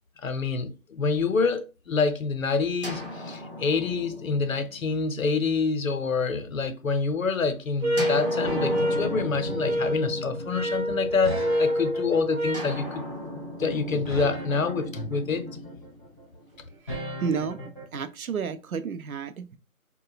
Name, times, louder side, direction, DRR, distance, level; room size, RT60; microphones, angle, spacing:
voice 1, 0.2-13.0 13.3-15.5, left 4 dB, 70° left, 0.6 m, -27 dB
sound 1, 2.8-6.6 8.0-11.5 12.5-16.7, left 1 dB, 40° right, 0.5 m, -37 dB
sound 2, 7.8-12.8, equal, 60° right, 1.0 m, -28 dB
sound 3, 8.4-18.0, equal, 20° right, 0.9 m, -37 dB
voice 2, 16.8-19.6, right 6 dB, 80° right, 0.6 m, -32 dB
3.0 x 2.1 x 2.3 m
figure-of-eight pair, 170°, 42 cm